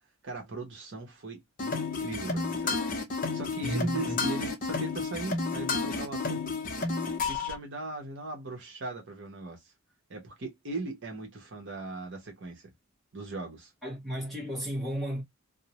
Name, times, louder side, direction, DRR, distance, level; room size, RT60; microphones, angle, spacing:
voice 1, 0.2-2.8 3.1-6.4 7.3-9.6 10.1-12.7 13.1-13.7, right 2 dB, 55° right, 0.9 m, -39 dB
sound 1, 1.6-7.6, left 4 dB, 40° left, 0.5 m, -31 dB
voice 2, 3.6-4.2 13.8-15.2, equal, ahead, 1.1 m, -33 dB
2.5 x 2.0 x 2.8 m
head